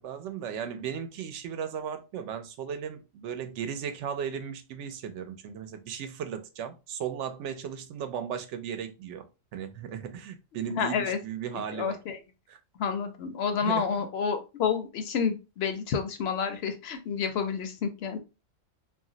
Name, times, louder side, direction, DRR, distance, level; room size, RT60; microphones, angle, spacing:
voice 1, 0.0-9.2 9.5-12.0 12.5-12.6 13.6-14.1, right 8 dB, 70° right, 0.8 m, -36 dB
voice 2, 10.8-11.2 11.7-12.2 12.8-18.2, left 6 dB, 65° left, 0.7 m, -29 dB
2.5 x 2.0 x 3.7 m
omnidirectional pair, 1.3 m